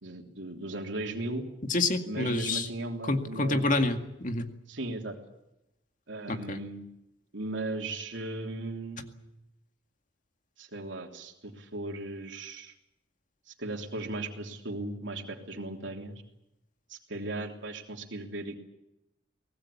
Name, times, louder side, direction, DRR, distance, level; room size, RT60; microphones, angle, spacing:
voice 1, 0.0-1.4 2.0-3.7 4.7-5.2 6.1-6.9 7.3-9.2 10.6-12.7 13.5-16.2 16.9-18.6, right 2 dB, 80° right, 2 dB, 3.3 m, -37 dB
voice 2, 1.7-2.7 3.1-4.5 6.3-6.6, left 2 dB, 40° left, 6 dB, 2.1 m, -28 dB
24.0 x 19.0 x 8.5 m, 0.89 s
head